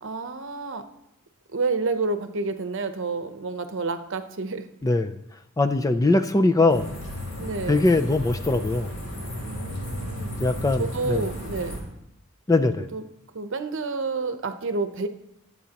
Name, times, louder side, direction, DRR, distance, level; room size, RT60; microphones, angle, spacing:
voice 1, 0.0-0.8 1.5-4.7 7.4-7.8 9.4-10.3 10.8-11.7 12.9-13.0 13.3-15.1, right 3 dB, 60° right, 8 dB, 0.8 m, -29 dB
voice 2, 4.8-5.2 5.6-6.9 7.7-8.9 10.4-11.3 12.5-12.9, left 2 dB, 15° left, 8 dB, 0.4 m, -21 dB
sound 1, 6.7-11.8, equal, 60° left, 3.4 m, -34 dB
21.0 x 8.2 x 2.9 m, 0.84 s
head